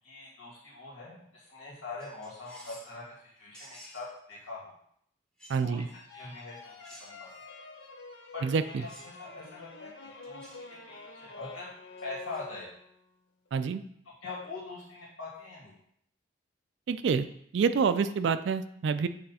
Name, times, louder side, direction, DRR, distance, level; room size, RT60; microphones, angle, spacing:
voice 1, 0.0-4.7 5.6-7.3 8.3-11.7 12.0-12.7 14.2-15.7, left 3 dB, 90° left, -7 dB, 2.4 m, -43 dB
sound 1, 2.0-3.0 3.5-4.1 5.4-5.7 6.8-7.4 8.9-9.2 10.2-10.6 12.0-12.4, equal, 5° left, 0.8 m, -52 dB
voice 2, 5.5-5.9 8.4-8.6 13.5-13.8 16.9-17.3 17.5-19.1, right 5 dB, 65° right, 11 dB, 0.3 m, -27 dB
sound 2, 5.9-13.1, left 3 dB, 70° left, 0.8 m, -48 dB
7.8 x 3.2 x 4.1 m, 0.70 s
head